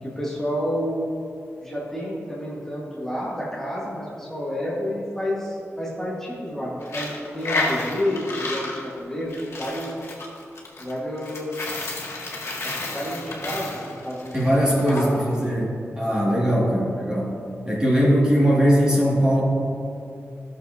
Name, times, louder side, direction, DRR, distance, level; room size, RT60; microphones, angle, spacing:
voice 1, 0.0-1.1 1.6-9.9 10.8-11.9 12.6-15.1, equal, 10° left, -7 dB, 1.6 m, -30 dB
Coin (dropping), 6.8-15.0, left 2 dB, 75° left, 1.8 m, -31 dB
voice 2, 14.3-17.4 17.7-19.4, equal, 15° right, -5 dB, 2.1 m, -20 dB
16.0 x 6.7 x 2.7 m, 2.5 s
wide cardioid pair, 155°, 5 cm